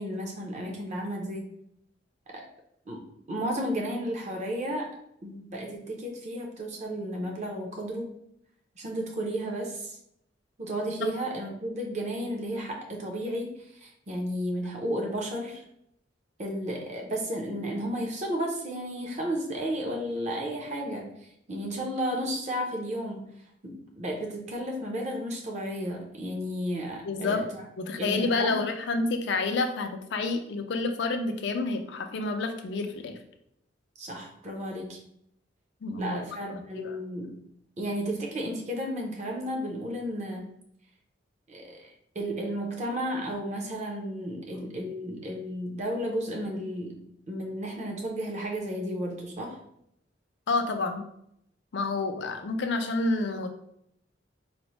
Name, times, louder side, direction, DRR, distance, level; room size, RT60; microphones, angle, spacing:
voice 1, 0.0-1.5 2.3-2.5 2.9-3.0 3.3-4.9 5.2-8.2 8.8-10.0 10.6-15.6 16.4-21.2 21.5-23.3 23.6-27.6 28.0-28.7 34.0-35.0 36.0-37.4 37.8-40.5 41.5-49.6, equal, 35° right, 0 dB, 0.6 m, -33 dB
voice 2, 27.0-27.4 27.8-33.1 35.8-36.2 36.5-37.0 50.5-51.1 51.7-53.5, left 3 dB, 60° left, 6 dB, 0.4 m, -29 dB
4.1 x 2.0 x 3.0 m, 0.74 s
head